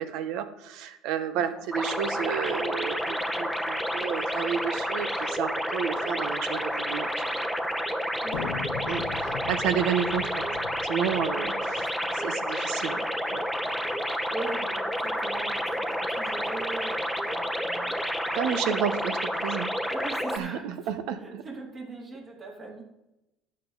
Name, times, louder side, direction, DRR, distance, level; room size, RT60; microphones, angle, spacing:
voice 1, 0.0-7.2 8.9-10.4 10.9-11.7 12.1-13.0 13.3-13.4 18.3-19.7 20.3-21.4, right 8 dB, 70° right, 11 dB, 1.0 m, -31 dB
sound 1, 1.7-20.4, equal, 5° right, 1.0 m, -30 dB
voice 2, 8.2-8.6 11.3-12.2 14.0-17.9 19.9-22.8, right 3 dB, 35° right, -1 dB, 2.9 m, -41 dB
sound 2, 8.3-11.9, left 11 dB, 85° left, 0.5 m, -39 dB
12.5 x 7.8 x 4.0 m, 0.95 s
supercardioid pair, 105°, 0 cm